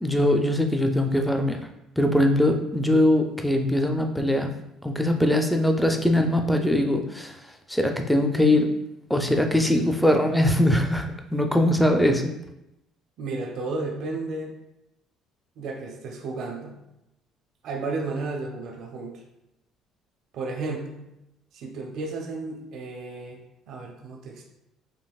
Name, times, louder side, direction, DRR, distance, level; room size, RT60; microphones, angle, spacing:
voice 1, 0.0-1.6 2.0-4.5 4.8-7.4 7.7-8.7 9.1-12.3, left 1 dB, ahead, 4 dB, 0.3 m, -21 dB
voice 2, 13.2-14.5 15.6-16.8 17.6-19.2 20.3-21.0 21.5-23.4 23.7-24.4, right 3 dB, 50° right, 1 dB, 0.6 m, -33 dB
5.2 x 2.9 x 2.3 m, 0.87 s
cardioid pair, 170°, 0 cm